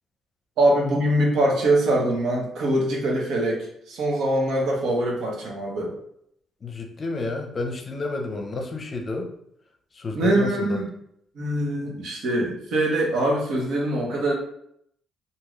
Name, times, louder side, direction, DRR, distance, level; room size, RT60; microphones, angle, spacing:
voice 1, 0.6-5.9 10.1-10.9 11.4-14.3, right 1 dB, 75° right, -1 dB, 0.9 m, -23 dB
voice 2, 6.6-9.3 10.0-10.8, left 3 dB, 40° left, 3 dB, 0.6 m, -30 dB
3.0 x 2.7 x 2.4 m, 0.72 s
cardioid pair, 90°, 0 cm